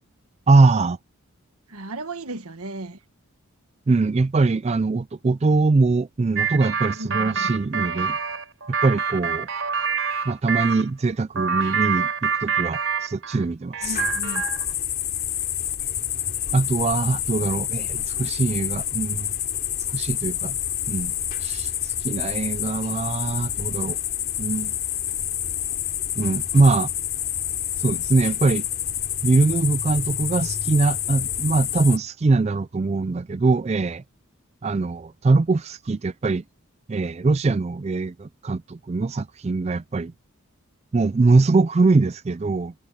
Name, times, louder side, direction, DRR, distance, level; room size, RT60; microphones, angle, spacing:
voice 1, 0.5-1.0 3.9-8.2 8.7-9.5 10.3-14.0 16.5-19.3 19.9-20.6 20.9-21.1 21.4-24.0 24.4-24.7 26.2-26.9 27.8-28.6 29.2-34.0 34.6-36.4 36.9-40.1 40.9-42.7, right 3 dB, 30° right, 0.3 m, -22 dB
voice 2, 1.7-3.0 7.0-7.6 13.8-14.5, right 2 dB, 85° right, 1.7 m, -35 dB
sound 1, 6.4-10.8 11.4-13.4 13.7-14.7, right 6 dB, 65° right, 4.0 m, -26 dB
sound 2, 13.8-32.0, left 10 dB, 40° left, 3.6 m, -28 dB
head